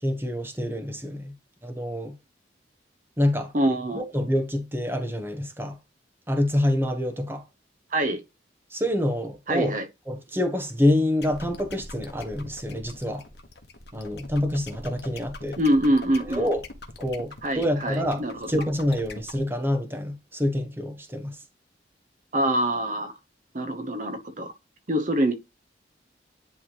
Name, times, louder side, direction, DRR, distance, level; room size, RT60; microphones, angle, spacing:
voice 1, 0.0-1.3 1.6-2.2 3.2-3.5 3.9-5.8 6.3-7.4 8.7-9.8 10.1-13.2 13.9-15.6 16.2-16.6 17.0-18.2 18.5-21.4, left 1 dB, 10° right, 1.1 m, -26 dB
voice 2, 3.5-4.0 7.9-8.2 9.5-9.9 15.6-16.5 17.4-18.3 22.3-23.1 23.5-24.5 24.9-25.3, right 1 dB, 45° right, 0.9 m, -24 dB
sound 1, 11.2-19.4, left 2 dB, 65° left, 1.3 m, -42 dB
10.0 x 3.5 x 3.0 m
head